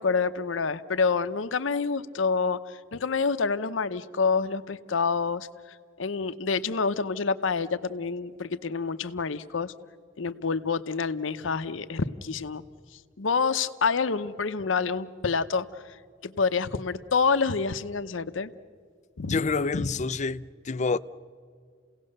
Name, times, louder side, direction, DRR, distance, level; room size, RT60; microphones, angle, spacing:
voice 1, 0.0-9.7 10.2-12.6 12.9-18.5 19.2-19.4 19.7-19.9, left 5 dB, 80° left, 0.8 m, -28 dB
voice 2, 19.2-21.0, left 4 dB, 40° left, 0.5 m, -28 dB
29.5 x 17.5 x 6.6 m
head